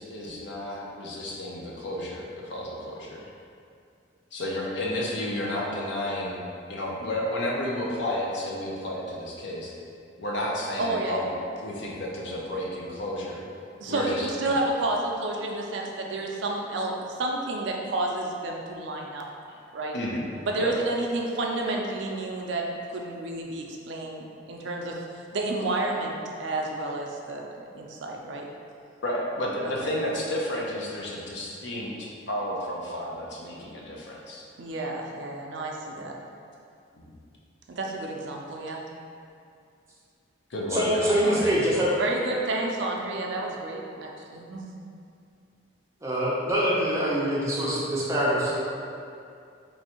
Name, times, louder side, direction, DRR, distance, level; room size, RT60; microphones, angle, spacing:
voice 1, 0.0-3.3 4.3-6.4 6.7-9.7 10.2-11.3 11.6-13.4 13.9-14.6 19.9-20.2 20.6-20.7 29.0-34.5 37.0-37.1 40.5-41.5, left 1 dB, 65° left, -3 dB, 0.6 m, -32 dB
voice 2, 10.8-11.3 13.8-19.2 19.7-19.9 20.4-25.0 25.3-27.5 27.7-28.5 34.6-36.1 37.7-38.8 42.0-44.7, right 2 dB, 70° right, 0 dB, 0.4 m, -30 dB
voice 3, 40.7-41.9 46.0-48.6, equal, 15° right, -7 dB, 0.6 m, -24 dB
3.1 x 2.6 x 4.3 m, 2.4 s
head